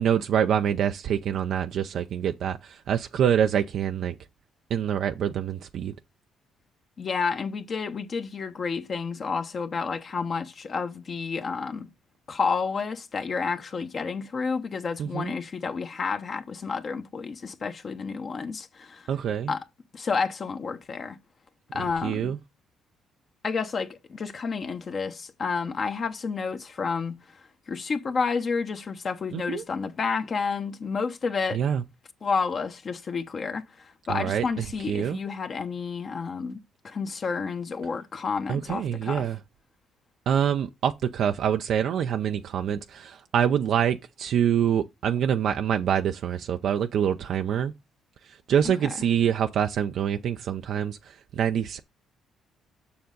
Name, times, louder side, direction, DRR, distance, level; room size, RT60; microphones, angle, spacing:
voice 1, 0.0-4.1 4.7-5.9 15.0-15.3 19.1-19.5 22.0-22.4 29.3-29.6 31.5-31.8 34.1-35.2 38.5-39.4 40.3-47.7 48.2-51.8, right 9 dB, 65° right, 0.5 m, -26 dB
voice 2, 7.0-11.9 12.3-19.1 19.5-19.6 19.9-21.2 21.7-22.3 23.4-27.4 27.7-31.6 32.2-36.6 36.8-39.3, left 5 dB, 45° left, 0.9 m, -30 dB
7.0 x 6.3 x 3.9 m
cardioid pair, 100°, 0 cm